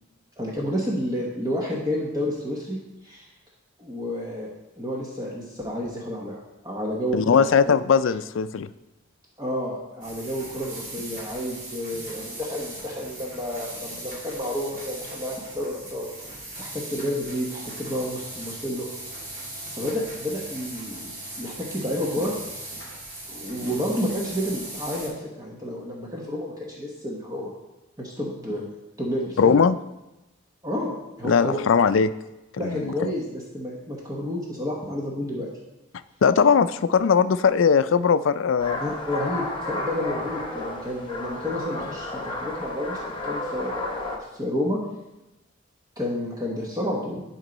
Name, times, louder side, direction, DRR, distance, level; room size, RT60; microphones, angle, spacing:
voice 1, 0.4-2.8 3.0-3.3 3.8-4.5 4.8-7.7 9.4-16.1 16.6-18.9 19.6-22.3 23.3-27.5 28.0-28.6 29.0-29.6 30.6-31.6 32.6-35.5 38.8-44.8 46.0-47.2, equal, 20° right, -3 dB, 1.1 m, -30 dB
voice 2, 7.1-8.7 29.4-29.8 31.2-32.1 32.6-32.9 36.2-38.8, left 6 dB, 70° left, 14 dB, 0.4 m, -19 dB
sound 1, 10.0-25.1, right 1 dB, 40° right, 2.8 m, -39 dB
sound 2, 38.6-44.2, left 2 dB, 25° left, 1.0 m, -32 dB
11.0 x 4.4 x 4.0 m, 0.97 s
head